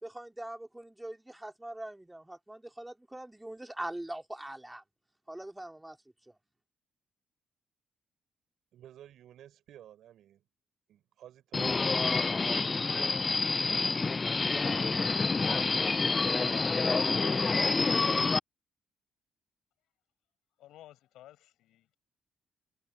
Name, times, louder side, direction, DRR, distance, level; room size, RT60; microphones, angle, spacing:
voice 1, 0.0-4.8 5.3-6.0 6.3-6.4, right 1 dB, 10° right, 3.6 m, -42 dB
voice 2, 8.7-10.4 10.9-13.1, right 11 dB, 75° right, 5.9 m, -53 dB
Subway metro underground, 11.5-18.4, left 4 dB, 30° left, 0.3 m, -28 dB
voice 3, 20.6-22.0, left 14 dB, 85° left, 6.8 m, -54 dB
cardioid pair, 90°, 0 cm